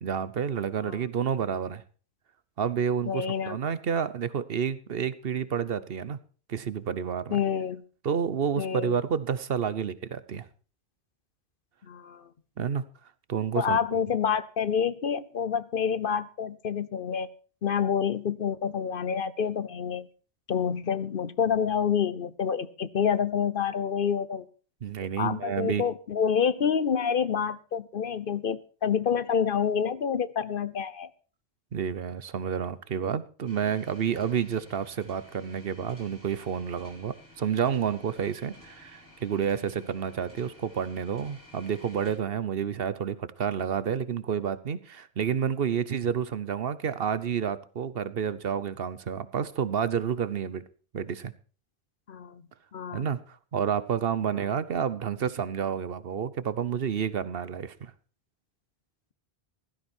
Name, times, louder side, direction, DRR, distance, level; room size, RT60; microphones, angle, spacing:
voice 1, 0.0-1.8 2.6-6.2 6.5-7.4 8.0-10.5 12.6-12.8 13.3-13.8 24.8-25.8 31.7-50.6 50.9-51.3 52.9-57.9, right 7 dB, 65° right, 15 dB, 1.1 m, -30 dB
voice 2, 3.1-3.6 7.3-7.8 8.6-9.0 11.8-12.3 13.6-17.3 17.6-20.1 20.5-24.5 25.2-31.1 52.1-52.4 52.7-53.1, left 7 dB, 60° left, 16 dB, 0.9 m, -28 dB
sound 1, 33.4-42.1, left 1 dB, 20° left, 6.7 m, -53 dB
16.0 x 12.5 x 4.4 m, 0.39 s
omnidirectional pair, 1.1 m